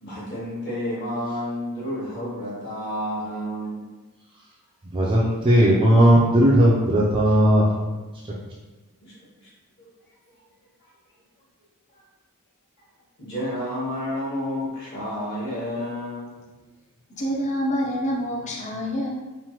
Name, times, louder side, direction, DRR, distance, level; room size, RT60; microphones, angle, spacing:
voice 1, 0.0-3.9 8.3-8.4 9.0-9.5 9.8-9.9 10.3-10.4 10.8-10.9 11.9-12.0 13.2-16.4, equal, 55° left, -7 dB, 1.0 m, -31 dB
voice 2, 4.9-8.0, equal, 25° right, -6 dB, 0.4 m, -17 dB
voice 3, 17.1-19.1, equal, 30° left, -2 dB, 0.5 m, -26 dB
3.1 x 2.1 x 2.9 m, 1.2 s
head